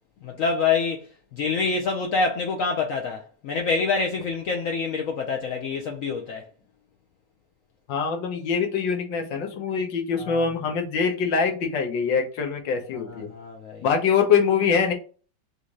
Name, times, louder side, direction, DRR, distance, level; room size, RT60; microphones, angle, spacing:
voice 1, 0.2-6.4 10.2-10.5 13.0-13.8, left 4 dB, 65° left, 0.8 m, -26 dB
voice 2, 7.9-13.3 13.8-14.9, left 6 dB, 85° left, 1.6 m, -24 dB
4.0 x 3.2 x 3.6 m
omnidirectional pair, 1.9 m